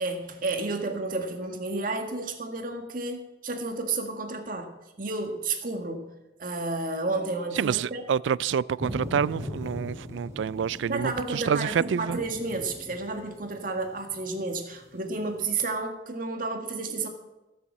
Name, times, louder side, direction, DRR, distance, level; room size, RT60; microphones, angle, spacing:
voice 1, 0.0-6.1 6.4-8.0 10.9-17.1, right 3 dB, 50° right, 1.8 m, -31 dB
voice 2, 7.6-12.2, right 7 dB, 80° right, 0.3 m, -27 dB
sound 1, 8.8-15.5, equal, 15° right, 2.9 m, -40 dB
16.5 x 7.0 x 7.5 m
head